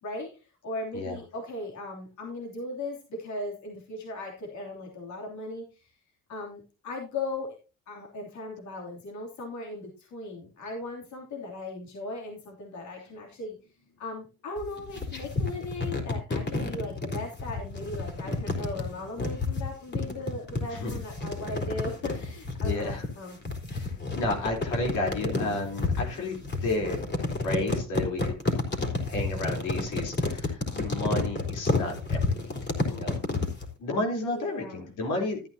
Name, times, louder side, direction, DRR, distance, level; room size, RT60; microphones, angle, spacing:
voice 1, 0.0-5.9 6.3-7.6 7.9-13.6 14.0-23.4 34.3-34.9, left 2 dB, 70° left, -1 dB, 3.0 m, -38 dB
sound 1, 14.6-33.7, left 3 dB, 35° left, 3.8 m, -30 dB
voice 2, 22.6-23.0 23.7-26.4 26.6-27.0 27.4-28.3 28.8-32.6 32.9-33.2 33.8-35.4, left 2 dB, 90° left, 2 dB, 3.7 m, -32 dB
13.5 x 9.1 x 2.8 m, 0.32 s
cardioid pair, 90°, 30 cm